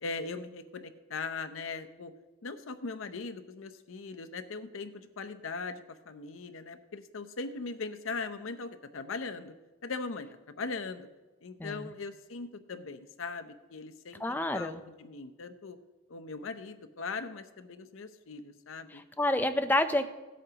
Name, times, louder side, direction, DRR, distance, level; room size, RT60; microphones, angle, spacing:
voice 1, 0.0-2.1 2.4-9.5 9.8-11.1 11.4-15.8 16.1-19.0, left 4 dB, 85° left, 9 dB, 0.7 m, -40 dB
voice 2, 11.6-11.9 14.2-14.8 19.2-20.1, left 1 dB, 10° left, 8 dB, 0.5 m, -28 dB
16.5 x 8.4 x 2.9 m, 1.1 s
head